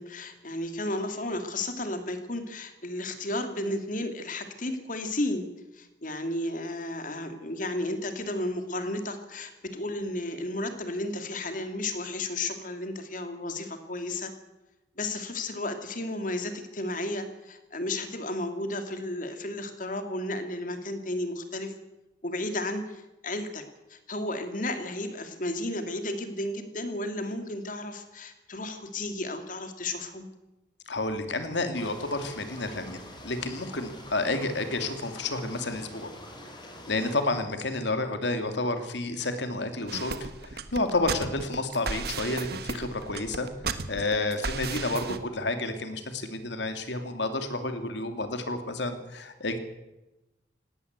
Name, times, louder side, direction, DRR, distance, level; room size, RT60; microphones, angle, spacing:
voice 1, 0.0-5.5 5.7-14.3 15.0-21.7 22.2-23.6 23.9-30.3, left 1 dB, 45° left, 7 dB, 2.5 m, -33 dB
voice 2, 30.9-36.1 36.9-43.5 43.9-49.6, left 2 dB, 70° left, 8 dB, 2.6 m, -30 dB
sound 1, 31.7-37.2, left 1 dB, 25° left, 4.2 m, -45 dB
sound 2, 39.9-45.2, right 4 dB, 55° right, 1.4 m, -34 dB
18.5 x 18.0 x 8.1 m, 1.0 s
head